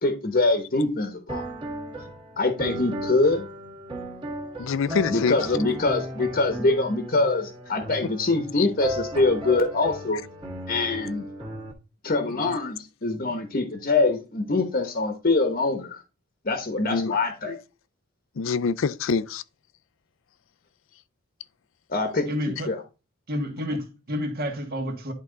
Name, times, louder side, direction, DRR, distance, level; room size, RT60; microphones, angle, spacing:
voice 1, 0.0-1.4 2.4-3.5 5.1-10.2 10.7-11.3 12.0-16.0 16.4-17.6 21.9-22.8, left 3 dB, 40° left, 1.0 m, -24 dB
sound 1, 1.3-11.7, right 1 dB, 25° right, 1.7 m, -35 dB
voice 2, 4.6-5.4 8.6-8.7 16.9-17.1 18.4-19.4, left 5 dB, 65° left, 0.4 m, -25 dB
voice 3, 22.3-22.7 23.3-25.1, equal, 45° right, 1.5 m, -29 dB
11.0 x 3.6 x 3.9 m
head